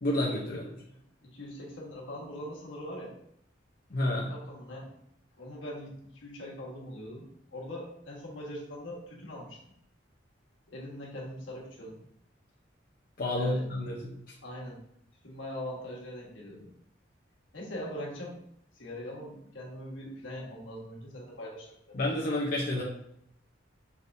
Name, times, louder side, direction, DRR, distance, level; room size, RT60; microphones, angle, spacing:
voice 1, 0.0-0.7 3.9-4.3 13.2-14.2 21.9-22.8, left 1 dB, 45° left, -3 dB, 0.7 m, -29 dB
voice 2, 0.8-3.1 4.3-4.9 5.3-9.6 10.7-12.0 13.4-13.6 14.4-14.8 15.2-16.7 17.5-18.3 18.7-22.0, left 1 dB, 80° left, -3 dB, 1.5 m, -42 dB
5.6 x 3.5 x 2.6 m, 0.72 s
head